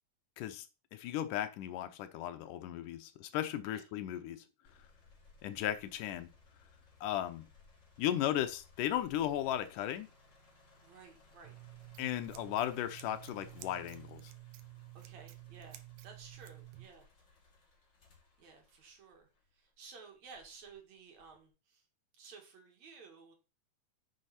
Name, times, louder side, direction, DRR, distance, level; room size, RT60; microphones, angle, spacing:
voice 1, 0.9-4.4 5.4-6.3 7.0-7.5 8.0-10.1 12.0-14.3, left 12 dB, 80° left, 2.2 m, -36 dB
sound 1, 4.6-19.7 20.3-21.5, left 3 dB, 35° left, 2.9 m, -63 dB
voice 2, 10.8-11.5 14.9-17.1 18.4-21.8 22.1-23.3, right 5 dB, 60° right, 3.0 m, -55 dB
Scissors, 11.4-16.8, right 18 dB, 75° right, 2.1 m, -52 dB
9.6 x 5.7 x 4.2 m
omnidirectional pair, 3.8 m